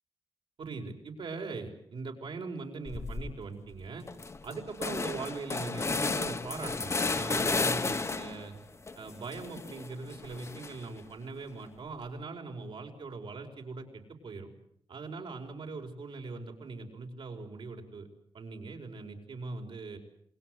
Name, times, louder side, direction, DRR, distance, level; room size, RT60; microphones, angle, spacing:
voice 1, 0.6-4.0 4.4-8.5 9.0-14.5 14.9-18.1 18.3-20.0, right 3 dB, 75° right, 3 dB, 5.2 m, -41 dB
sound 1, 2.8-3.3 3.7-3.8 4.1-8.5 8.9-11.0, left 3 dB, 30° left, 1.1 m, -33 dB
27.5 x 22.0 x 8.0 m, 0.68 s
wide cardioid pair, 150°, 9 cm